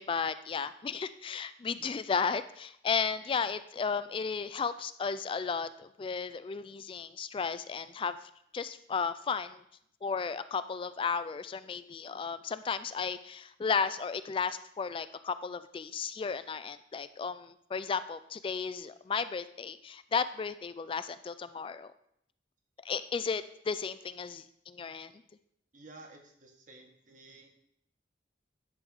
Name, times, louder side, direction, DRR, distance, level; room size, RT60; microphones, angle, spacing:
voice 1, 0.0-8.1 8.5-9.6 10.0-21.9 22.8-25.1, left 5 dB, 30° left, 13 dB, 0.3 m, -34 dB
voice 2, 25.7-27.5, right 2 dB, 45° right, 2 dB, 1.5 m, -53 dB
10.5 x 3.6 x 6.2 m, 0.71 s
head